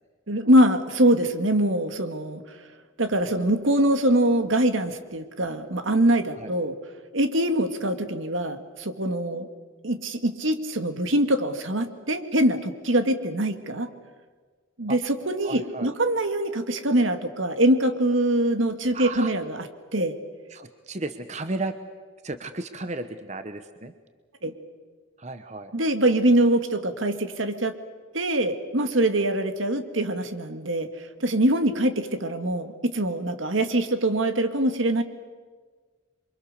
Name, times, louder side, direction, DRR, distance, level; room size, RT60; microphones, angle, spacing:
voice 1, 0.3-2.4 3.0-6.8 7.1-9.5 9.8-13.9 14.8-19.7 19.9-20.2 24.4-24.5 25.7-27.7 28.1-35.0, right 1 dB, 75° right, 8 dB, 1.9 m, -23 dB
voice 2, 15.4-15.9 18.9-19.3 20.5-21.7 22.2-23.9 25.2-25.7, right 2 dB, 35° right, 9 dB, 1.0 m, -34 dB
28.0 x 24.5 x 6.8 m, 1.5 s
head